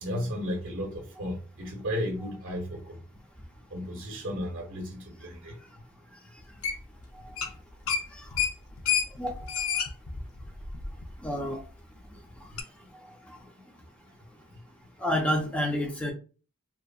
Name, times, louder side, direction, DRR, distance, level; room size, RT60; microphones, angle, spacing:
voice 1, 0.0-3.0 3.7-5.6, equal, 60° right, 0.6 m, -34 dB
sound 1, 6.6-7.0 7.3-7.6 7.9-11.3 11.6-11.7 12.6-12.7, left 7 dB, 80° left, 0.5 m, -30 dB
voice 2, 9.2-9.6 11.2-11.6 13.3-13.4 15.0-16.1, equal, 5° left, 0.5 m, -29 dB
2.7 x 2.4 x 2.3 m
head